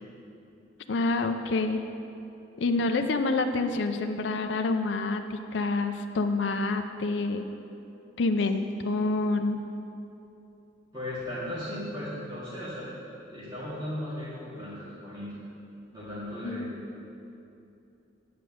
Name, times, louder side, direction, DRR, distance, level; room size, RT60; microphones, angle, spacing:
voice 1, 0.9-1.8 2.6-7.5 8.2-9.6 16.4-16.7, left 3 dB, 70° left, 6 dB, 0.5 m, -27 dB
voice 2, 10.9-12.9 13.3-15.4 15.9-16.7, left 1 dB, 25° right, -11 dB, 2.2 m, -36 dB
10.5 x 5.0 x 7.8 m, 2.8 s
head